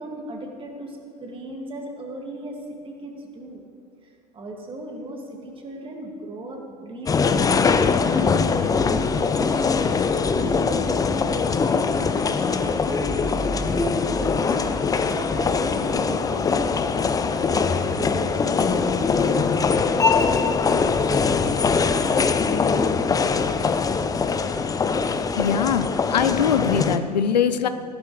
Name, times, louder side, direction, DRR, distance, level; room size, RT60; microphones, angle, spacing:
voice 1, 0.0-3.6 4.0-14.6 15.0-20.5 20.8-21.5, right 1 dB, 25° right, 2 dB, 2.1 m, -36 dB
sound 1, 7.1-27.0, left 5 dB, 15° left, 0.6 m, -22 dB
voice 2, 25.4-27.7, left 8 dB, 80° left, 11 dB, 0.6 m, -22 dB
15.0 x 11.5 x 3.2 m, 2.4 s
figure-of-eight pair, 80°, 21 cm